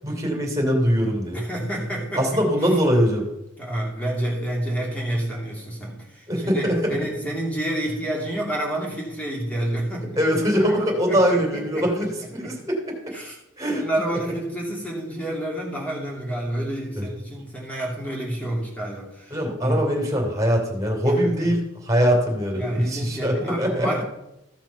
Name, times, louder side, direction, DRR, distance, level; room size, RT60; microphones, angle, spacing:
voice 1, 0.0-1.4 2.2-3.3 6.3-7.0 10.2-12.9 13.6-13.8 16.9-17.1 19.3-24.0, equal, 15° right, 0 dB, 3.0 m, -22 dB
voice 2, 1.3-2.4 3.6-10.2 11.1-12.1 12.4-12.5 13.1-13.4 13.7-19.8 21.2-21.5 22.5-24.0, right 1 dB, 5° left, -3 dB, 2.9 m, -29 dB
15.0 x 6.0 x 5.7 m, 0.89 s
head